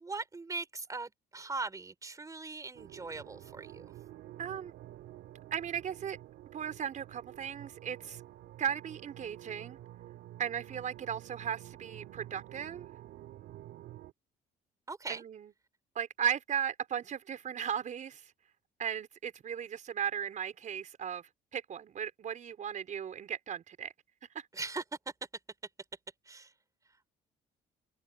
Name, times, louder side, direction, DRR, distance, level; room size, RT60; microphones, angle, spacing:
voice 1, 0.0-3.9 14.9-15.2 24.5-24.8 26.2-26.5, right 3 dB, 20° right, 4.3 m, -40 dB
sound 1, 2.7-14.1, right 14 dB, 75° right, 3.1 m, -50 dB
voice 2, 4.4-4.7 5.5-6.2 6.5-8.2 8.6-9.8 10.4-12.9 15.1-15.5 15.9-18.3 18.8-23.9 24.3-24.5, right 8 dB, 50° right, 4.9 m, -36 dB
open air
cardioid pair, 110°, 17 cm